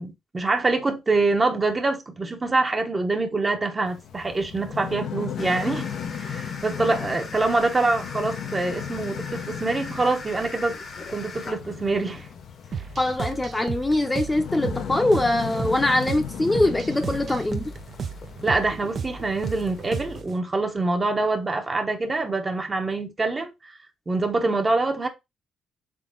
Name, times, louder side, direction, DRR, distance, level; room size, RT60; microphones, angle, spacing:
voice 1, 0.0-5.9 6.1-10.7 11.1-12.3 18.4-23.8 24.1-25.1, right 3 dB, 25° right, 0.9 m, -25 dB
sound 1, 3.9-20.2, left 8 dB, 70° left, 0.7 m, -36 dB
sound 2, 5.4-20.2, left 4 dB, 45° left, 1.0 m, -43 dB
sound 3, 12.7-20.4, right 6 dB, 50° right, 0.5 m, -34 dB
voice 2, 13.0-17.7, left 1 dB, 15° left, 0.8 m, -23 dB
3.8 x 3.6 x 3.8 m
cardioid pair, 90°, 0 cm